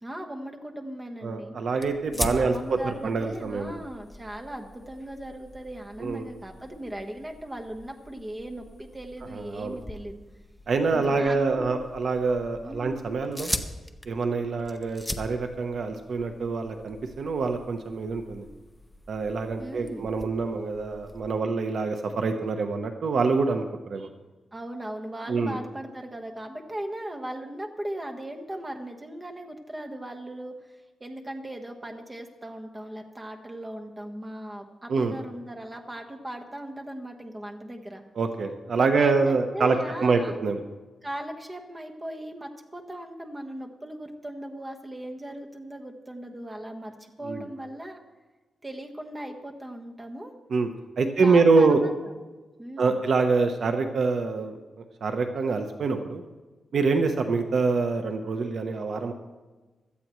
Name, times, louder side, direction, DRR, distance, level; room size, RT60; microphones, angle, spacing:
voice 1, 0.0-1.6 2.3-10.2 10.9-11.9 12.6-13.0 19.6-20.1 24.5-30.5 31.0-38.0 38.8-40.4 41.0-48.0 48.6-50.3 51.0-51.9 52.6-53.0, right 1 dB, 15° right, 3 dB, 1.3 m, -38 dB
voice 2, 1.2-3.8 6.0-6.3 9.4-9.8 10.7-13.5 14.1-18.5 19.1-24.1 25.3-25.6 34.9-35.1 38.2-40.6 47.3-47.4 50.5-50.7 51.0-51.8 52.8-54.6 55.0-56.2 56.7-59.1, right 4 dB, 55° right, 6 dB, 0.9 m, -25 dB
sound 1, 1.8-21.4, left 1 dB, 5° left, 0.7 m, -41 dB
17.0 x 13.0 x 3.1 m, 1.2 s
wide cardioid pair, 145°, 0 cm